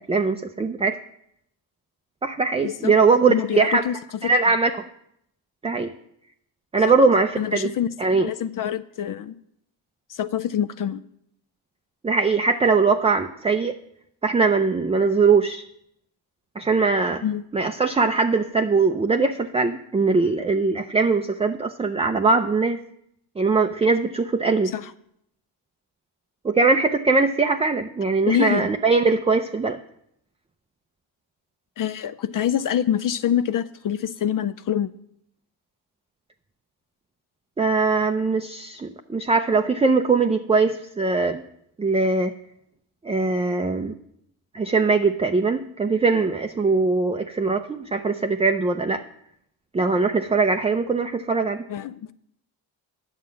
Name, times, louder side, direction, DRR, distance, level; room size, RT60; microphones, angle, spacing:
voice 1, 0.1-1.0 2.2-3.8 4.2-4.7 5.6-5.9 6.7-7.7 8.0-8.3 12.0-13.8 14.2-15.6 16.6-17.2 17.5-22.8 23.4-24.7 26.4-29.8 37.6-41.4 41.8-42.3 43.0-44.0 44.5-49.0 49.7-51.6, right 4 dB, 15° right, 5 dB, 0.4 m, -21 dB
voice 2, 2.6-2.9 3.3-3.9 4.2-4.3 6.9-7.0 7.4-9.3 10.1-11.0 17.2-17.4 24.7-24.9 28.3-28.7 31.8-34.9 51.7-52.0, left 10 dB, 45° left, 14 dB, 0.4 m, -25 dB
9.6 x 7.2 x 5.7 m, 0.74 s
cardioid pair, 80°, 47 cm